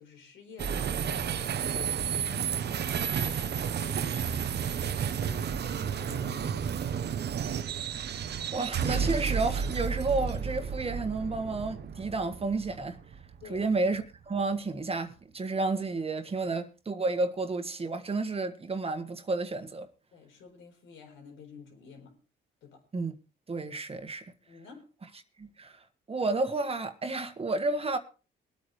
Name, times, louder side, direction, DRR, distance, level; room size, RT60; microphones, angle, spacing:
voice 1, 0.0-4.5 4.9-7.2 13.4-13.7 20.1-22.2 22.6-22.8 24.5-24.8, left 6 dB, 75° left, 4.5 m, -50 dB
sound 1, 0.6-14.0, right 7 dB, 55° right, 1.0 m, -32 dB
voice 2, 8.5-13.0 13.5-19.9 22.9-23.1 23.5-24.2 25.4-25.8 26.1-28.0, right 3 dB, 30° right, 1.7 m, -31 dB
22.0 x 9.1 x 3.3 m
cardioid pair, 90°, 20 cm